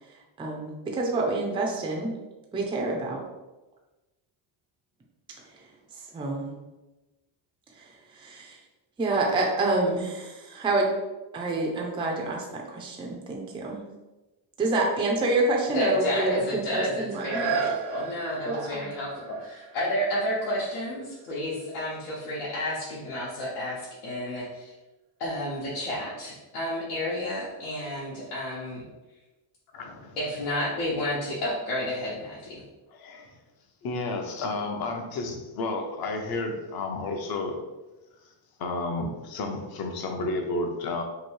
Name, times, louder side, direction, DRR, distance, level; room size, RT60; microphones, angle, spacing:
voice 1, 0.4-2.1 2.5-3.2 5.9-6.5 7.8-8.6 9.0-10.9 11.3-13.8 14.6-17.5 18.5-18.9, right 2 dB, 10° right, -1 dB, 0.3 m, -27 dB
voice 2, 15.7-24.7 25.2-28.8 30.2-32.6, left 1 dB, 85° left, -8 dB, 1.1 m, -31 dB
sound 1, 17.1-22.7 23.3-23.4, right 6 dB, 65° right, 0.6 m, -36 dB
voice 3, 29.7-30.2 32.9-33.3 33.8-37.6 38.6-41.0, left 2 dB, 50° left, 3 dB, 0.6 m, -31 dB
3.0 x 2.7 x 4.4 m, 1.1 s
cardioid pair, 170°, 49 cm